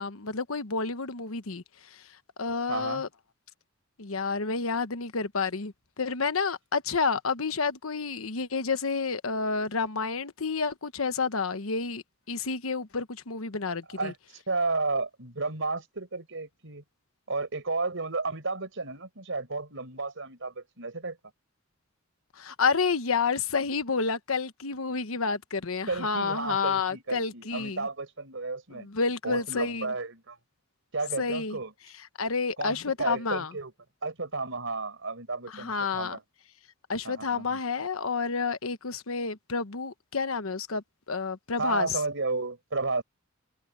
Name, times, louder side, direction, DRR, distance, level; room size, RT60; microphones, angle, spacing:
voice 1, 0.0-2.0 2.4-3.1 4.0-14.1 22.4-27.9 28.7-29.9 31.2-31.6 32.2-33.5 35.5-36.2 36.9-42.0, left 4 dB, 90° left, 1.1 m, -30 dB
voice 2, 2.7-3.0 13.9-14.2 14.5-16.8 17.3-21.2 25.9-28.9 29.2-30.4 30.9-31.7 32.6-33.7 34.0-36.2 37.0-37.6 41.6-43.0, right 3 dB, 65° right, 5.4 m, -32 dB
head